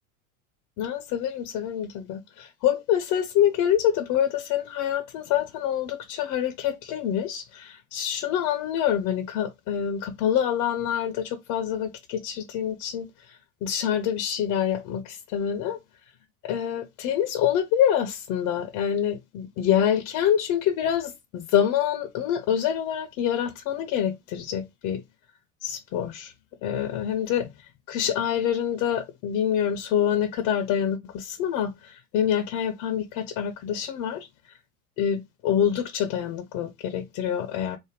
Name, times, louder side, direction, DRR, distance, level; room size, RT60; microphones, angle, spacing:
voice 1, 0.8-15.8 16.4-25.0 25.6-26.3 26.6-27.5 27.9-34.3 35.0-37.8, left 9 dB, 45° left, 0.5 m, -26 dB
3.2 x 2.1 x 3.2 m
hypercardioid pair, 80°, 44 cm